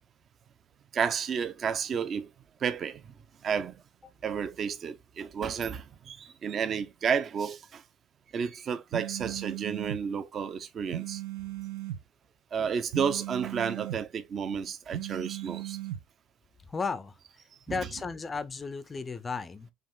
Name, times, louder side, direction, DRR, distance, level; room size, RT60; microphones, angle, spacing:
voice 1, 0.9-2.3 2.6-3.0 3.4-3.7 4.2-7.8 8.3-11.2 12.5-15.8 17.7-17.8, right 7 dB, 30° right, 0.5 m, -31 dB
sound 1, 8.9-10.0 10.9-12.0 12.9-14.0 14.9-16.0, right 14 dB, 90° right, 0.6 m, -37 dB
voice 2, 16.7-17.1 17.7-19.7, left 4 dB, 15° left, 0.5 m, -34 dB
5.3 x 2.5 x 3.6 m
cardioid pair, 160°, 0 cm